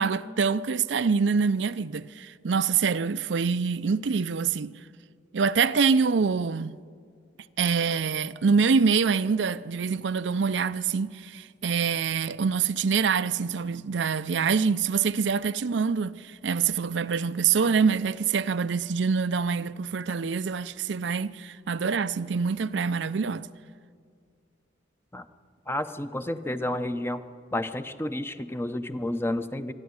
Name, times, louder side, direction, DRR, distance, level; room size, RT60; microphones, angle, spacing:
voice 1, 0.0-4.7 5.3-6.8 7.6-23.5, right 5 dB, 75° right, 0.5 m, -25 dB
voice 2, 25.7-27.2 27.5-29.7, left 1 dB, 15° left, 0.7 m, -30 dB
25.0 x 11.5 x 9.6 m
head